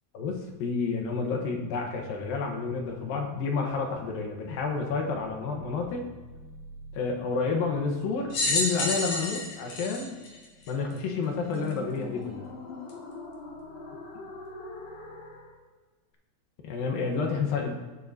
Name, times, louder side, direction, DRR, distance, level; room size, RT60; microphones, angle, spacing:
voice 1, 0.1-6.1 6.9-10.2 10.7-12.4 16.6-17.8, left 4 dB, 70° left, 2 dB, 2.7 m, -30 dB
sound 1, 2.5-15.6, left 2 dB, 85° left, 3.6 m, -45 dB
sound 2, 8.3-11.0 11.7-11.8 12.9-13.0, left 2 dB, 55° left, 2.9 m, -29 dB
18.0 x 7.5 x 2.7 m, 1.3 s
omnidirectional pair, 4.6 m